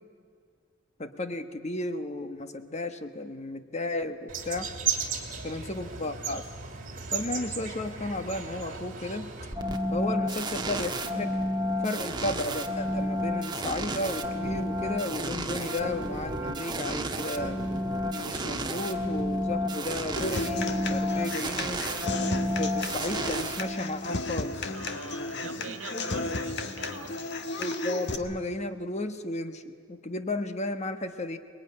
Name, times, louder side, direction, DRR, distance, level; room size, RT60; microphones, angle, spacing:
voice 1, 1.0-4.7 5.4-6.5 7.1-9.3 9.9-11.4 11.8-17.6 18.1-21.8 22.6-24.7 25.4-26.3 27.6-31.4, left 2 dB, 35° left, 9 dB, 1.2 m, -34 dB
sound 1, 4.3-9.5, right 6 dB, 40° right, 2.6 m, -35 dB
sound 2, 9.5-24.2, equal, 20° right, 1.4 m, -31 dB
Human voice / Acoustic guitar, 20.2-28.2, left 2 dB, 55° left, 1.5 m, -34 dB
voice 2, 24.7-27.2, right 4 dB, 75° right, 8 dB, 1.8 m, -44 dB
24.5 x 20.5 x 9.8 m, 2.2 s
head